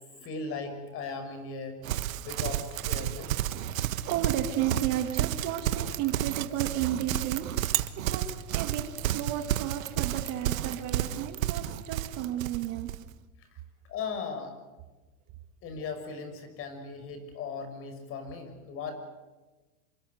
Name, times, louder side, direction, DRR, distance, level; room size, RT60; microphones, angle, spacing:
voice 1, 0.2-1.8 2.2-3.3 9.3-9.4 13.4-13.5 13.9-14.6 15.6-19.1, left 4 dB, 30° left, 8 dB, 6.0 m, -38 dB
Livestock farm animals working animals, 1.8-13.0, right 13 dB, 65° right, 1.6 m, -31 dB
voice 2, 3.8-12.9, right 11 dB, 35° right, 7 dB, 2.1 m, -33 dB
27.5 x 23.5 x 8.1 m, 1.2 s
supercardioid pair, 150°, 43 cm